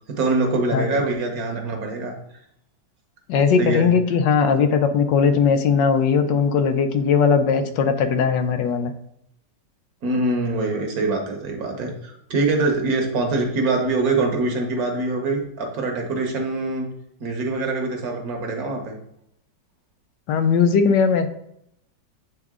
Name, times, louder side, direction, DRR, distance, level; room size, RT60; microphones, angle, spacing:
voice 1, 0.1-2.2 3.6-3.9 7.6-7.7 10.0-16.9 17.2-19.0, right 3 dB, 60° right, 2 dB, 1.4 m, -24 dB
voice 2, 3.3-8.9 20.3-21.3, left 6 dB, 85° left, 9 dB, 1.3 m, -19 dB
8.3 x 3.6 x 3.6 m, 0.76 s
omnidirectional pair, 1.9 m